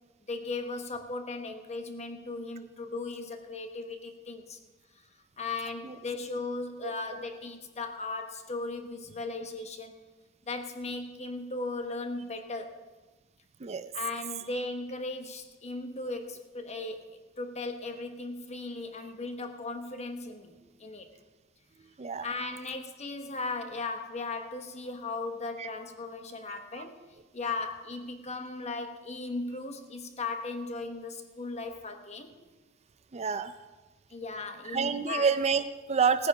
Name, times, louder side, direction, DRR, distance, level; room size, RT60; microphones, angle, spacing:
voice 1, 0.3-4.6 5.4-9.9 10.5-12.8 13.9-21.1 22.2-27.0 27.3-32.4 34.1-35.3, left 3 dB, 35° left, 7 dB, 1.2 m, -37 dB
voice 2, 6.8-7.2 13.6-13.9 21.8-22.3 25.6-25.7 26.7-26.8 27.4-27.5 33.1-33.5 34.6-36.3, right 6 dB, 30° right, 11 dB, 0.5 m, -29 dB
17.0 x 9.4 x 4.9 m, 1.2 s
head